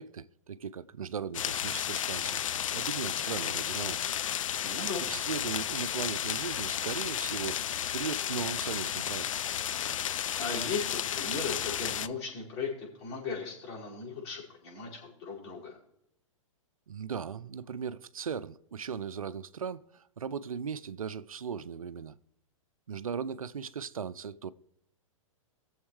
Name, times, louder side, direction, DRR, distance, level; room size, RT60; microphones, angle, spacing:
voice 1, 0.0-2.4 2.7-4.1 5.1-7.6 7.9-9.3 16.9-22.1 22.9-24.5, right 7 dB, 85° right, 0.5 m, -38 dB
sound 1, 1.3-12.1, left 10 dB, 70° left, 0.5 m, -33 dB
voice 2, 4.6-5.0 10.0-15.8, left 4 dB, 50° left, 5.3 m, -37 dB
20.5 x 7.2 x 3.2 m
hypercardioid pair, 115°, 17 cm